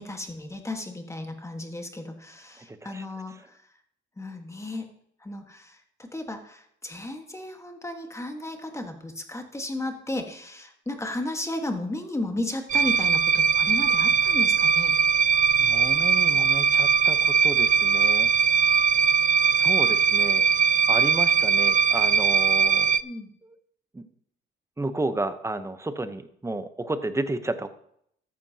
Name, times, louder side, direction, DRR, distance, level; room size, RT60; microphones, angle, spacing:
voice 1, 0.0-3.6 4.2-4.9 5.2-15.0 23.0-23.3, left 1 dB, 15° left, 5 dB, 1.5 m, -34 dB
voice 2, 2.6-3.1 15.6-18.3 19.4-20.5 20.9-22.9 23.4-23.5 23.9-24.1 24.8-27.7, right 2 dB, 15° right, 11 dB, 0.9 m, -32 dB
sound 1, 12.7-23.0, right 6 dB, 40° right, 0.4 m, -21 dB
13.5 x 10.5 x 2.9 m, 0.69 s
cardioid pair, 90°, 20 cm